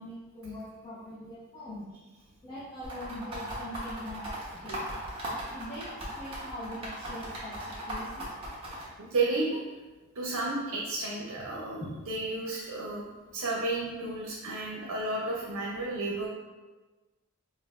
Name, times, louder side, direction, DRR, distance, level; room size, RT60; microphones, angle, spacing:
voice 1, 0.0-1.9 2.4-4.4 4.6-4.9 5.5-8.3 11.8-12.0, left 1 dB, 20° left, -12 dB, 0.8 m, -42 dB
sound 1, 2.8-8.8, right 1 dB, 25° right, 0.9 m, -38 dB
voice 2, 9.0-9.6 10.2-13.0 13.3-16.3, right 2 dB, 75° right, -3 dB, 0.6 m, -32 dB
5.3 x 2.4 x 2.4 m, 1.2 s
head